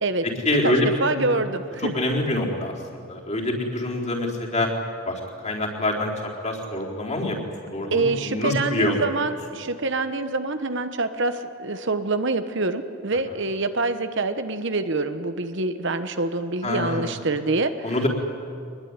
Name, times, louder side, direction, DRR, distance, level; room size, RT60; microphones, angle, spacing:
voice 1, 0.4-1.4 1.9-4.7 5.1-6.1 6.4-7.4 7.7-9.0 16.6-17.1 17.8-18.1, left 1 dB, 35° left, -2 dB, 4.1 m, -25 dB
voice 2, 1.0-1.9 7.9-18.0, right 3 dB, 55° right, 9 dB, 1.2 m, -26 dB
24.5 x 21.0 x 9.8 m, 2.3 s
head